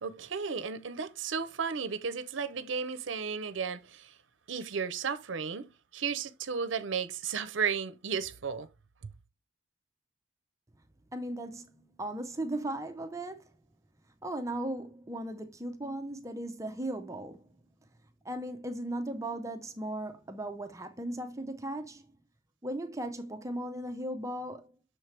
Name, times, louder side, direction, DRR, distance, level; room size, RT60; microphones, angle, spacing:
voice 1, 0.0-4.2 4.5-8.7, right 6 dB, 75° right, 0.6 m, -34 dB
voice 2, 11.1-13.5 14.2-17.5 18.2-22.1 22.6-24.7, right 1 dB, 15° right, 0.6 m, -37 dB
6.4 x 4.5 x 3.2 m
head